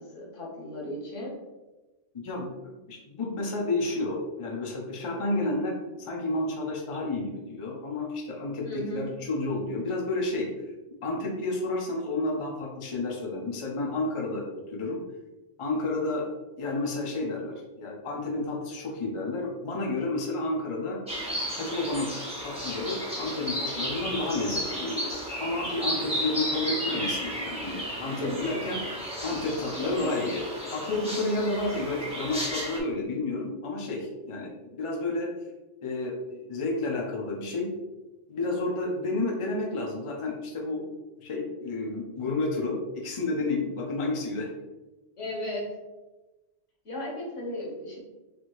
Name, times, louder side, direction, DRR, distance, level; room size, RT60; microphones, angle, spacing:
voice 1, 0.0-1.3 8.6-9.1 28.0-28.5 29.8-30.3 45.2-45.7 46.8-48.0, left 1 dB, 90° left, -3 dB, 1.5 m, -35 dB
voice 2, 2.1-10.5 11.0-15.0 15.6-16.3 16.6-21.0 21.5-22.1 22.4-35.3 35.8-37.7 38.3-40.8 41.2-44.5, left 2 dB, 35° left, 0 dB, 0.6 m, -31 dB
sound 1, 21.1-32.8, equal, 5° right, 1.3 m, -33 dB
4.3 x 2.7 x 3.0 m, 1.1 s
omnidirectional pair, 1.2 m